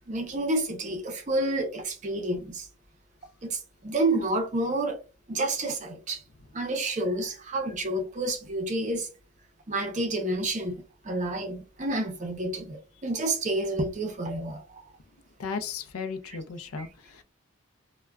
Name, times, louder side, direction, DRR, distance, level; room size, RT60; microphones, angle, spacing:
voice 1, 0.1-2.7 3.4-5.0 5.3-6.2 6.5-9.1 9.7-10.7 11.0-14.8 16.8-16.9, right 2 dB, 35° right, 0.5 m, -29 dB
voice 2, 15.4-17.2, left 5 dB, 80° left, 0.5 m, -35 dB
3.4 x 2.1 x 2.2 m
head